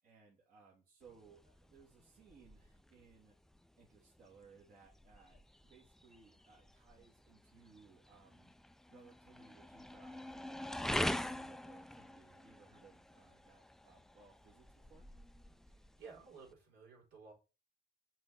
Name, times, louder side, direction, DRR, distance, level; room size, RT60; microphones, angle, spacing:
voice 1, 0.0-3.4 3.8-8.5 8.9-15.1, right 5 dB, 60° right, 2.7 m, -63 dB
sound 1, 1.0-16.5, left 1 dB, ahead, 0.3 m, -45 dB
voice 2, 16.0-17.3, right 5 dB, 75° right, 4.2 m, -54 dB
6.1 x 4.7 x 4.3 m
cardioid pair, 110°, 17 cm